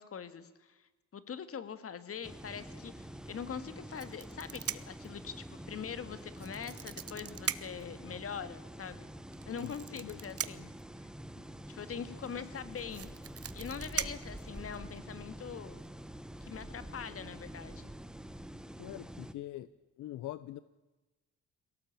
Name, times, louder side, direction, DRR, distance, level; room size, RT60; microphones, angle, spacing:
voice 1, 0.0-9.1 9.5-10.7 11.4-13.1 13.5-15.8 16.4-17.9, left 7 dB, 50° left, 13 dB, 2.0 m, -43 dB
sound 1, 2.2-19.3, right 1 dB, ahead, 1.3 m, -47 dB
sound 2, 3.9-5.1 6.3-7.9 9.3-10.8 12.2-12.3 12.6-15.0 15.8-16.1 16.4-16.6, right 9 dB, 50° right, 1.1 m, -39 dB
voice 2, 9.6-10.2 18.8-19.7 20.0-20.6, left 14 dB, 80° left, 16 dB, 0.8 m, -43 dB
22.0 x 18.0 x 8.9 m, 1.1 s
cardioid pair, 90°, 30 cm